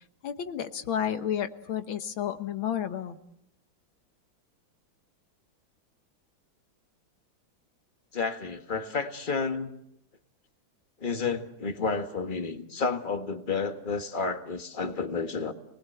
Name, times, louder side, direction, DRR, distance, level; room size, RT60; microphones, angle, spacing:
voice 1, 0.2-3.2, left 9 dB, 80° left, 10 dB, 2.0 m, -31 dB
voice 2, 8.1-9.7 11.0-15.5, left 4 dB, 25° left, 7 dB, 1.6 m, -31 dB
29.5 x 20.0 x 7.9 m, 0.78 s
omnidirectional pair, 2.2 m